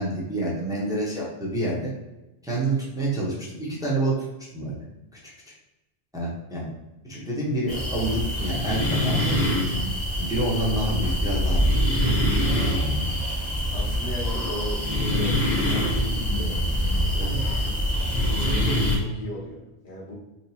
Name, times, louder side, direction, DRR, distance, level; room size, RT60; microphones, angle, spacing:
voice 1, 0.0-1.9 2.4-4.2 4.5-4.8 6.1-6.7 7.0-9.4 10.2-11.7 11.9-12.2 17.2-17.4, right 1 dB, 5° right, -5 dB, 0.8 m, -28 dB
sound 1, 7.7-19.0, equal, 45° left, 1.0 m, -24 dB
voice 2, 13.7-15.3 15.6-16.6 17.1-20.1, left 1 dB, 90° left, -5 dB, 1.5 m, -36 dB
4.0 x 2.7 x 2.7 m, 1.0 s
omnidirectional pair, 1.1 m